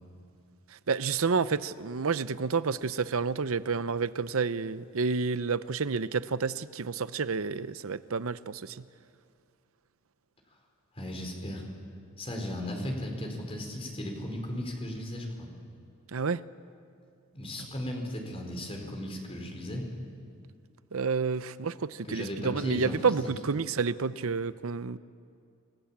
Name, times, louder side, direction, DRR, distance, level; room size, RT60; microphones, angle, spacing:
voice 1, 0.9-8.8 16.1-16.4 20.9-25.0, right 5 dB, 65° right, 0.7 m, -29 dB
voice 2, 10.9-11.6 12.2-15.5 17.3-19.8 22.1-23.3, left 1 dB, 25° left, 4.7 m, -36 dB
28.0 x 21.0 x 8.8 m
head